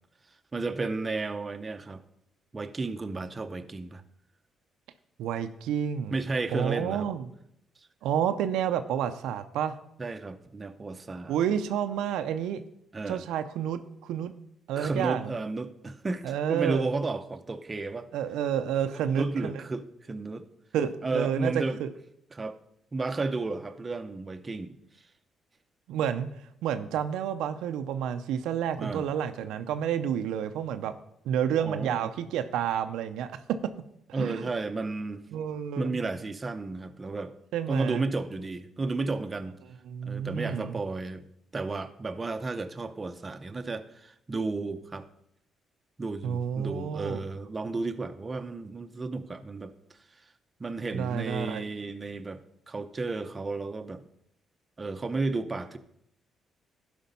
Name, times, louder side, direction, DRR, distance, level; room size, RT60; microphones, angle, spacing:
voice 1, 0.5-2.0 2.5-4.0 6.1-7.1 10.0-11.4 12.9-13.2 14.8-18.1 18.8-20.5 21.0-21.8 22.3-22.6 22.9-24.8 28.8-29.1 31.6-32.1 34.1-35.3 35.8-37.3 37.7-39.6 40.1-41.2 41.5-45.0 46.0-49.7 50.6-52.4 52.7-54.0 54.8-55.8, right 3 dB, 30° right, 8 dB, 0.7 m, -33 dB
voice 2, 5.2-6.2 6.5-7.3 8.0-9.8 11.3-12.6 13.1-14.3 14.7-15.3 16.2-16.9 18.1-19.6 20.7-21.9 25.9-26.3 26.6-31.0 31.2-33.7 34.1-34.4 35.3-36.0 37.5-38.0 39.9-40.8 46.2-47.2 50.9-51.6, right 9 dB, 90° right, 8 dB, 0.6 m, -30 dB
11.5 x 5.1 x 5.3 m, 0.75 s
cardioid pair, 90°, 0 cm